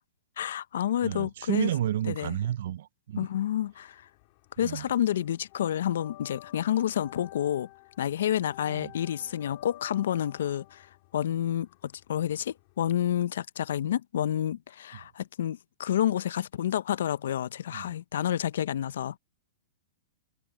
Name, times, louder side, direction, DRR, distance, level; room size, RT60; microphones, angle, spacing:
voice 1, 0.4-1.7 2.1-2.4 3.2-4.0 4.6-7.7 8.0-10.9 11.1-19.2, left 11 dB, 75° left, 0.5 m, -29 dB
voice 2, 1.0-3.3 4.6-4.9 8.7-8.9 17.7-17.9, right 12 dB, 65° right, 0.4 m, -31 dB
sound 1, 3.6-4.8 5.0-12.9, left 19 dB, 45° left, 3.1 m, -50 dB
hypercardioid pair, 155°, 0 cm